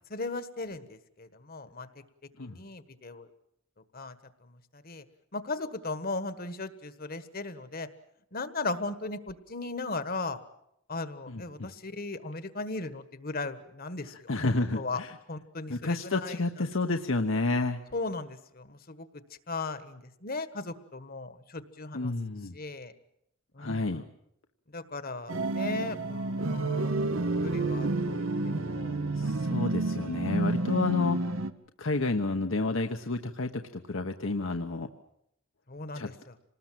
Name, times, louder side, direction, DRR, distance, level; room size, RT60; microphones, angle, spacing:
voice 1, 0.1-2.0 2.4-3.3 3.9-5.0 5.3-7.9 8.3-10.4 10.9-15.0 15.3-16.4 17.9-22.1 22.5-22.9 23.5-24.0 24.7-27.1 27.4-29.1 35.7-36.3, left 3 dB, 45° left, 12 dB, 1.4 m, -37 dB
voice 2, 11.3-11.7 14.3-15.1 15.7-17.8 21.9-22.6 23.6-24.0 29.2-31.3 31.8-34.9 35.9-36.1, left 2 dB, 70° left, 5 dB, 1.1 m, -30 dB
sound 1, 25.3-31.5, right 2 dB, 80° right, 1.1 m, -29 dB
26.5 x 19.5 x 7.6 m, 0.75 s
head